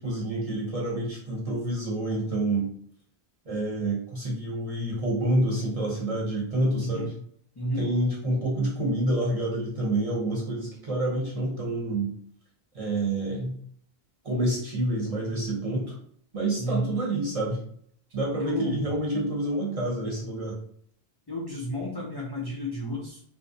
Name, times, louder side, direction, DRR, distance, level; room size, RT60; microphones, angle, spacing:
voice 1, 0.0-2.7 3.5-7.1 7.7-12.1 12.7-13.6 14.2-15.9 16.3-17.6 18.1-20.5, right 1 dB, 40° right, -4 dB, 0.8 m, -28 dB
voice 2, 6.8-7.1 7.6-7.9 16.6-16.9 18.4-18.9 21.3-23.2, left 1 dB, 40° left, -4 dB, 0.3 m, -31 dB
2.5 x 2.0 x 2.5 m, 0.63 s
omnidirectional pair, 1.1 m